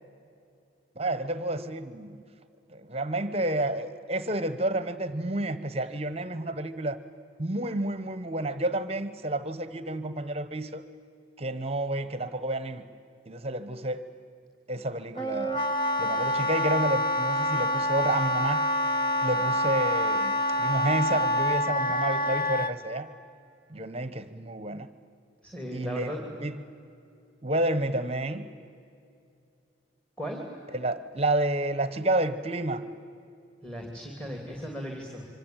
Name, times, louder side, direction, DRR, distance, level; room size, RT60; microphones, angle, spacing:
voice 1, 1.0-2.2 2.7-7.0 7.4-10.8 11.4-12.8 13.3-14.0 14.7-15.6 16.0-18.6 19.2-20.3 20.6-23.1 23.7-24.9 25.7-26.1 26.4-26.6 27.4-28.5 30.7-32.8, right 1 dB, 30° right, 12 dB, 1.1 m, -30 dB
Wind instrument woodwind instrument, 15.2-22.7, left 1 dB, 25° left, 1.4 m, -26 dB
voice 2, 25.4-26.2 30.2-30.4 33.6-35.3, equal, 5° left, 1 dB, 2.9 m, -36 dB
26.0 x 25.0 x 9.0 m, 2.5 s
head